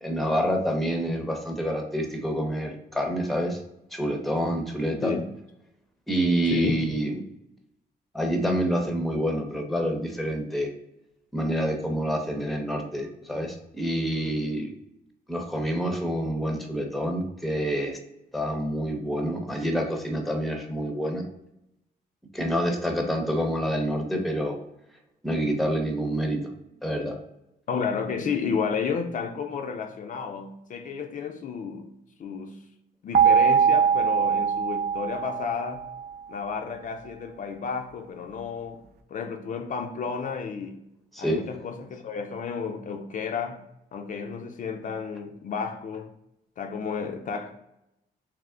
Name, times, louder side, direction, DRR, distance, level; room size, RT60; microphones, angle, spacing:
voice 1, 0.0-3.6 3.9-5.1 6.1-7.3 8.1-10.7 11.3-14.7 15.3-18.0 18.3-21.2 22.3-24.6 25.2-26.4 26.8-27.2 41.1-41.4, equal, ahead, 3 dB, 0.6 m, -27 dB
voice 2, 6.5-6.8 27.7-31.9 32.2-32.6 33.0-35.8 36.3-38.8 39.1-40.8 41.2-43.6 43.9-46.1 46.6-47.5, left 6 dB, 50° left, 5 dB, 0.4 m, -31 dB
sound 1, 33.1-36.1, right 7 dB, 65° right, 0.5 m, -22 dB
3.4 x 3.0 x 3.6 m, 0.85 s
wide cardioid pair, 145°, 17 cm